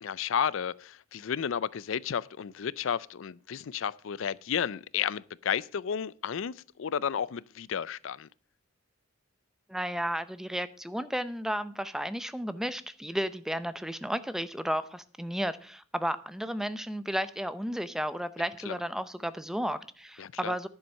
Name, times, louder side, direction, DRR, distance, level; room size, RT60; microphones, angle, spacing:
voice 1, 0.0-8.3 18.4-18.8 20.2-20.6, left 8 dB, 70° left, 0.4 m, -32 dB
voice 2, 9.7-20.7, equal, ahead, 0.6 m, -33 dB
11.0 x 7.3 x 6.3 m
head